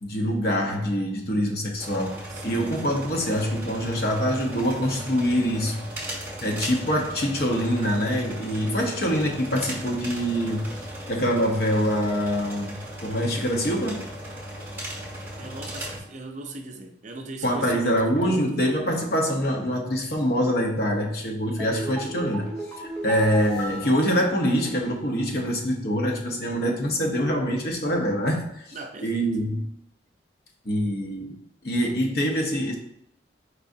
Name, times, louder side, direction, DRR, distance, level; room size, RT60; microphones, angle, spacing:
voice 1, 0.0-5.8 6.2-10.7 11.1-14.1 17.4-22.5 22.8-28.8 29.0-29.7 30.6-32.8, equal, 55° left, 1 dB, 0.8 m, -25 dB
sound 1, 1.8-16.0, right 1 dB, 15° right, 1.2 m, -37 dB
voice 2, 2.3-2.7 15.4-18.7 23.0-23.3 28.7-29.3, right 2 dB, 40° right, 4 dB, 0.5 m, -39 dB
sound 2, 21.6-25.0 25.3-25.4, equal, 10° left, 1.4 m, -36 dB
4.7 x 3.7 x 2.6 m, 0.76 s
head